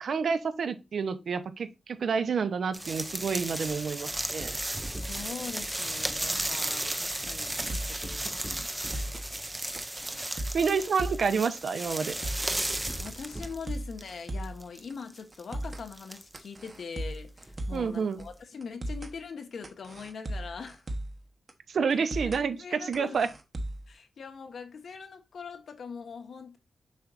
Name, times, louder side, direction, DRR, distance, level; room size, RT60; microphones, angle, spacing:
voice 1, 0.0-4.5 8.2-8.4 10.5-12.1 17.7-18.2 21.7-23.3, right 5 dB, 70° right, 0.8 m, -29 dB
sound 1, 2.7-14.1 14.4-16.7 17.4-17.6 18.2-18.3, right 1 dB, 10° right, 0.6 m, -34 dB
voice 2, 4.9-8.7 13.0-20.8 22.5-23.2 23.9-26.6, left 5 dB, 70° left, 1.4 m, -42 dB
sound 2, 7.5-8.0 8.3-8.4 8.7-9.3 9.8-11.3 11.6-11.7 12.0-12.6 13.0-14.6 14.9-15.0 15.3-15.9 16.3-17.9 18.2-18.3 18.6-19.1 19.6-21.2 21.5-21.6 21.9-22.4 22.9-23.9, right 1 dB, 30° right, 1.0 m, -37 dB
7.3 x 6.0 x 2.5 m
wide cardioid pair, 170°, 0 cm